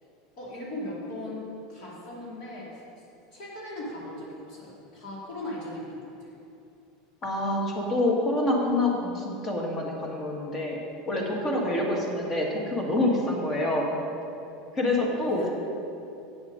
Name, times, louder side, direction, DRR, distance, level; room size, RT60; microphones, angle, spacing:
voice 1, 0.4-2.8 3.3-6.3 15.4-15.5, left 1 dB, 50° left, -5 dB, 2.6 m, -38 dB
voice 2, 7.2-10.8 11.1-13.9 14.7-15.5, left 1 dB, 25° left, -1 dB, 1.7 m, -26 dB
9.2 x 7.2 x 6.6 m, 2.8 s
supercardioid pair, 155°, 0 cm